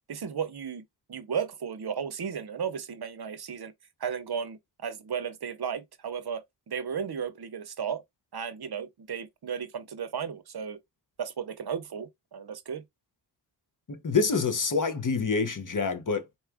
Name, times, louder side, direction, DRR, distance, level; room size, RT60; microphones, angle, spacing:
voice 1, 0.1-3.7 4.0-8.0 8.3-10.8 11.2-12.8, right 7 dB, 60° right, 0.6 m, -34 dB
voice 2, 13.9-16.4, left 4 dB, 45° left, 0.7 m, -27 dB
4.2 x 2.3 x 3.3 m
wide cardioid pair, 80°, 44 cm